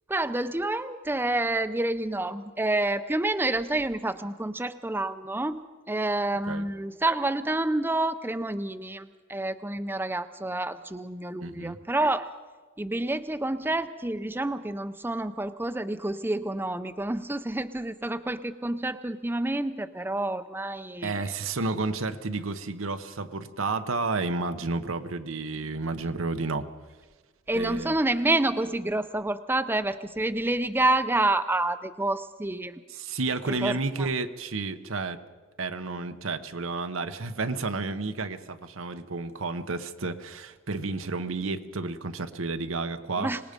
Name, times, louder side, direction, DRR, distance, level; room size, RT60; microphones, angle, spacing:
voice 1, 0.1-12.3 12.8-21.3 27.5-32.8 33.5-34.1 43.2-43.4, right 2 dB, 10° right, 11 dB, 0.5 m, -28 dB
voice 2, 11.4-11.8 21.0-26.6 27.5-28.0 32.9-35.2 35.6-43.3, right 3 dB, 90° right, 9 dB, 1.0 m, -31 dB
25.5 x 19.5 x 5.2 m, 1.4 s
head